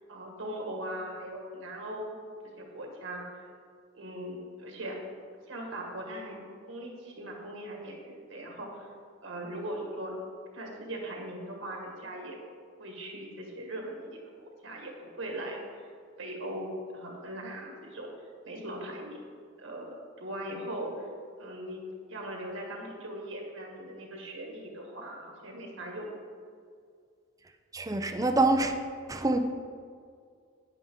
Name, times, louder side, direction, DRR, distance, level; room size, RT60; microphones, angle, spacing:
voice 1, 0.1-2.2 2.6-3.5 3.9-5.0 5.5-6.4 6.7-8.9 9.2-10.2 10.5-12.4 12.8-15.6 16.2-18.1 18.4-19.2 19.6-21.1 21.4-26.1, right 1 dB, 75° right, 0 dB, 2.0 m, -39 dB
voice 2, 27.7-28.7 29.1-29.4, right 2 dB, 15° right, 6 dB, 0.6 m, -25 dB
9.6 x 9.2 x 3.9 m, 2.2 s
head